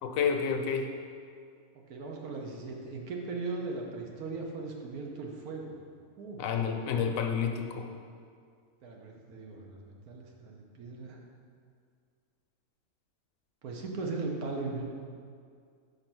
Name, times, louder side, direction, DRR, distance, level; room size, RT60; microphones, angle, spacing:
voice 1, 0.0-0.9 6.4-7.9, left 6 dB, 70° left, 4 dB, 1.0 m, -29 dB
voice 2, 1.7-5.8 6.2-6.4 8.8-11.2 13.6-14.8, right 3 dB, 75° right, 0 dB, 1.4 m, -38 dB
5.6 x 4.3 x 6.1 m, 2.2 s
omnidirectional pair, 1.6 m